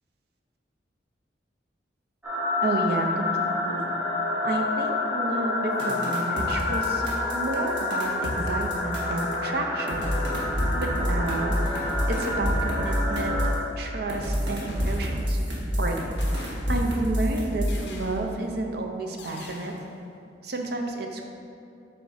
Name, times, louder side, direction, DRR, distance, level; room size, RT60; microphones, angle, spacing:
sound 1, 2.2-13.5, left 2 dB, 10° right, 1.1 m, -28 dB
voice 1, 2.6-3.9 4.4-10.1 10.7-13.4 13.8-15.4 15.8-16.0 16.2-19.7 20.4-21.2, right 2 dB, 60° right, 2 dB, 0.6 m, -31 dB
sound 2, 5.8-9.3 9.9-13.6 14.1-17.8, equal, 80° right, 1.3 m, -28 dB
sound 3, 13.7-14.1 14.7-15.6 16.2-17.1 17.7-18.5 19.2-20.0, left 2 dB, 65° left, 0.6 m, -45 dB
7.9 x 4.5 x 2.7 m, 2.6 s
head